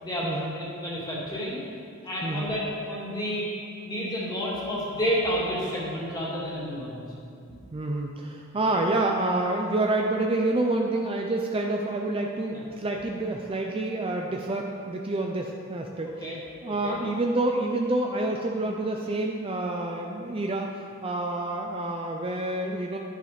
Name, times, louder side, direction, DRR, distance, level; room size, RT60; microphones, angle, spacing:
voice 1, 0.0-1.6 2.0-3.5 3.8-7.0 12.5-12.6 16.2-16.4 16.6-17.0, equal, 20° left, -6 dB, 2.2 m, -30 dB
voice 2, 2.2-2.5 7.7-16.3 16.6-23.0, right 2 dB, 25° right, 1 dB, 0.5 m, -28 dB
11.0 x 6.5 x 5.1 m, 2.4 s
head